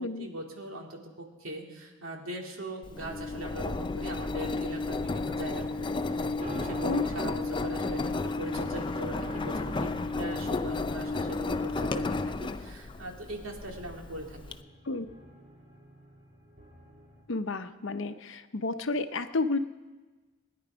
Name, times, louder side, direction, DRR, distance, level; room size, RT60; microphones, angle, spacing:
voice 1, 0.0-14.4, right 1 dB, 90° right, 1 dB, 2.4 m, -41 dB
Engine, 2.8-14.5, left 3 dB, 25° left, 0.4 m, -32 dB
sound 1, 6.4-17.2, right 1 dB, 45° right, 2.5 m, -49 dB
voice 2, 6.8-7.3 14.8-15.1 17.3-19.6, left 3 dB, 70° left, 10 dB, 0.7 m, -31 dB
21.0 x 10.5 x 5.0 m, 1.3 s
head